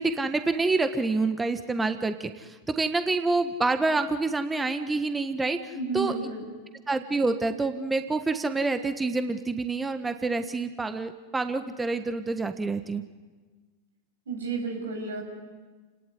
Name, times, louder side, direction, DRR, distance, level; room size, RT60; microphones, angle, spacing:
voice 1, 0.0-6.1 6.9-13.0, right 3 dB, 15° right, 8 dB, 1.4 m, -27 dB
voice 2, 5.7-6.4 14.3-15.2, right 3 dB, 80° right, 3 dB, 6.8 m, -32 dB
29.0 x 19.0 x 9.6 m, 1.4 s
hypercardioid pair, 95°, 0 cm